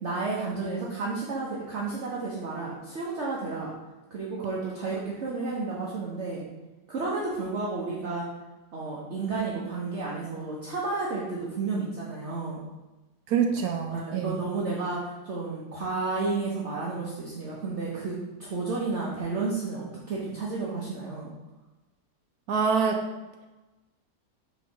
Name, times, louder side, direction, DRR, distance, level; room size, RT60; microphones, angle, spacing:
voice 1, 0.0-3.7 4.1-6.4 6.9-8.3 8.7-12.6 13.5-13.6 13.9-21.3, right 3 dB, 50° right, -5 dB, 1.2 m, -32 dB
voice 2, 13.3-14.4 22.5-23.0, right 6 dB, 70° right, 3 dB, 1.1 m, -25 dB
4.6 x 4.5 x 5.7 m, 1.1 s
omnidirectional pair, 1.8 m